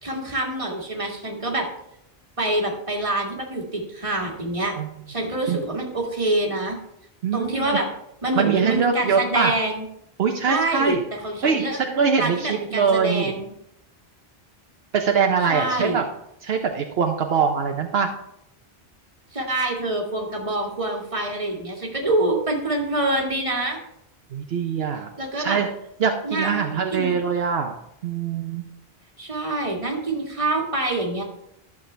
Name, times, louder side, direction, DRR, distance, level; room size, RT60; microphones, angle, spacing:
voice 1, 0.0-1.7 2.4-4.8 5.1-6.8 7.3-7.9 8.2-9.9 10.5-11.0 11.2-11.8 12.2-13.5 15.5-16.0 19.3-23.8 25.2-25.6 26.2-26.7 26.9-27.1 29.2-31.2, right 2 dB, 30° right, -1 dB, 1.9 m, -26 dB
voice 2, 7.2-7.8 8.3-9.5 10.2-11.0 11.4-13.3 14.9-16.1 16.4-18.1 24.3-25.1 25.4-25.7 26.0-27.8 28.0-28.6, right 6 dB, 75° right, 4 dB, 1.0 m, -23 dB
11.5 x 7.1 x 3.3 m, 0.79 s
omnidirectional pair, 1.1 m